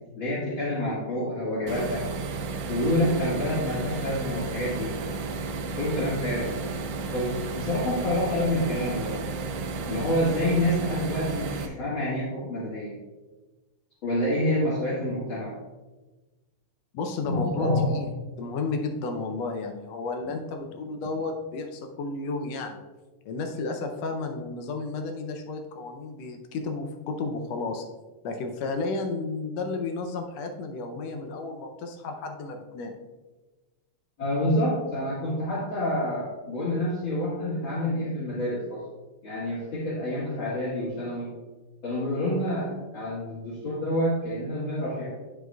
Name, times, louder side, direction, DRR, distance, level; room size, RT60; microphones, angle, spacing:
voice 1, 0.2-2.0 2.7-4.9 5.8-6.5 7.1-9.2 9.9-12.9 14.0-15.5 17.3-17.9 34.2-38.8 39.2-41.3 41.8-45.1, left 1 dB, 45° left, -9 dB, 2.3 m, -27 dB
sound 1, 1.7-11.7, right 4 dB, 75° right, 1.6 m, -33 dB
voice 2, 16.9-18.1 18.4-22.8 23.3-27.8 28.2-32.9, left 3 dB, 75° left, 4 dB, 1.6 m, -32 dB
9.9 x 6.2 x 2.3 m, 1.2 s
omnidirectional pair, 3.4 m